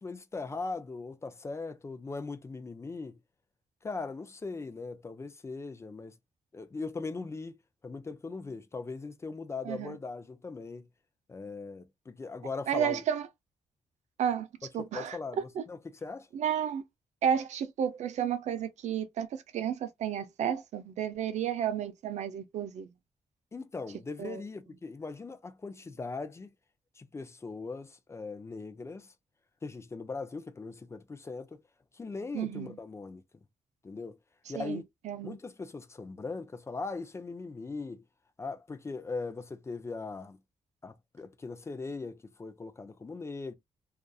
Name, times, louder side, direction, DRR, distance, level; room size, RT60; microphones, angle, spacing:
voice 1, 0.0-3.2 3.8-6.1 6.5-7.5 7.8-10.9 11.3-13.0 14.8-16.3 23.5-26.5 27.0-29.1 29.6-31.6 31.9-33.2 33.8-34.2 34.5-34.8 35.2-38.0 38.4-40.4 40.8-43.5, left 3 dB, 25° left, 0.4 m, -39 dB
voice 2, 9.6-10.0 12.7-13.3 14.2-14.5 14.7-15.2 15.6-15.7 16.3-16.8 17.2-22.9 24.2-24.4 32.3-32.7 34.6-35.4, right 9 dB, 80° right, 0.5 m, -32 dB
2.6 x 2.4 x 2.2 m
cardioid pair, 110°, 12 cm